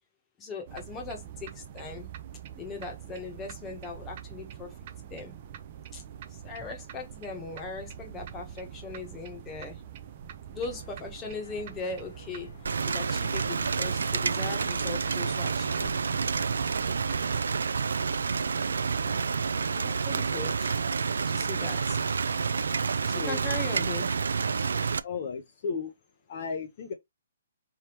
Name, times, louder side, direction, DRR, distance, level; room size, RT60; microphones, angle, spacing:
voice 1, 0.4-2.1 2.5-4.7 5.1-5.4 5.9-6.0 6.3-9.8 10.5-12.5 12.8-16.2 19.0-19.2 19.7-20.7 21.3-22.0 23.0-24.1, left 4 dB, 10° left, 1.1 m, -39 dB
sound 1, 0.7-17.4, right 9 dB, 30° right, 0.6 m, -44 dB
sound 2, 10.6-16.3, left 4 dB, 55° left, 1.3 m, -55 dB
Rain, 12.7-25.0, right 5 dB, 90° right, 0.5 m, -29 dB
voice 2, 25.0-25.9 26.3-26.9, left 5 dB, 35° left, 0.6 m, -34 dB
4.5 x 3.5 x 3.0 m
hypercardioid pair, 175°, 0 cm